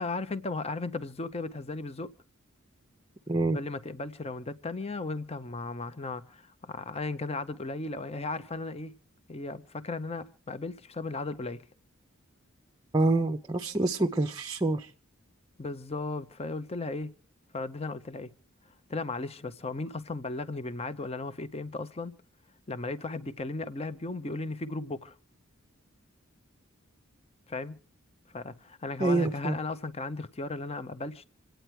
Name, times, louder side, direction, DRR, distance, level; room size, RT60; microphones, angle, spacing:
voice 1, 0.0-2.1 3.5-8.9 9.3-11.6 15.6-17.1 17.5-18.3 18.9-22.1 22.7-25.1 27.5-27.8 28.3-31.3, left 3 dB, 30° left, 0.6 m, -36 dB
voice 2, 3.3-3.6 12.9-14.9 29.0-29.6, right 2 dB, 20° right, 0.6 m, -26 dB
27.5 x 9.1 x 4.5 m
head